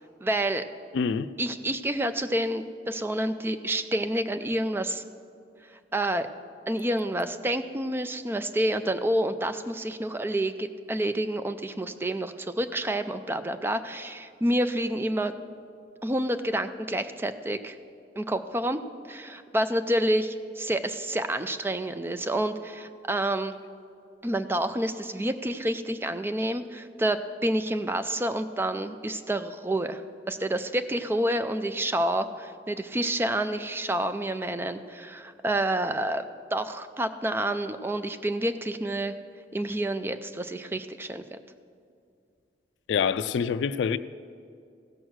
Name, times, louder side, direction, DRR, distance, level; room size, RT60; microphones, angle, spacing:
voice 1, 0.2-0.6 1.4-5.0 5.9-6.3 6.7-15.3 16.0-17.8 18.2-18.8 19.1-23.5 24.2-30.0 30.3-36.2 36.5-39.1 39.5-41.4, right 1 dB, 15° right, 0.4 m, -28 dB
voice 2, 0.9-1.3 42.9-44.0, left 6 dB, 85° left, 0.3 m, -26 dB
15.5 x 6.3 x 6.3 m
head